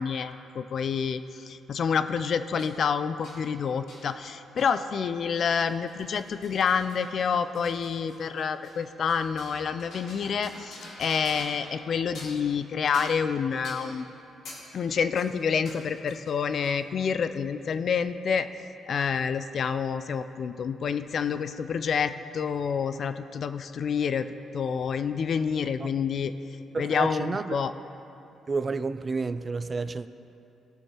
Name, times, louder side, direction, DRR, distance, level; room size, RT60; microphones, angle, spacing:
voice 1, 0.0-14.1 14.7-18.5 18.9-24.3 24.5-26.3 26.8-27.7, left 6 dB, 55° left, 11 dB, 0.4 m, -28 dB
sound 1, 2.6-2.8 3.2-3.4 3.9-4.1 4.6-4.8 5.1-11.7 12.0-12.5 12.9-13.3 13.6-13.9 14.5-14.7 15.2-16.8, left 1 dB, 75° left, 2.4 m, -47 dB
voice 2, 26.7-27.6 28.5-30.1, right 4 dB, 30° right, 13 dB, 0.3 m, -30 dB
17.5 x 6.4 x 2.9 m, 2.9 s
cardioid pair, 90°, 0 cm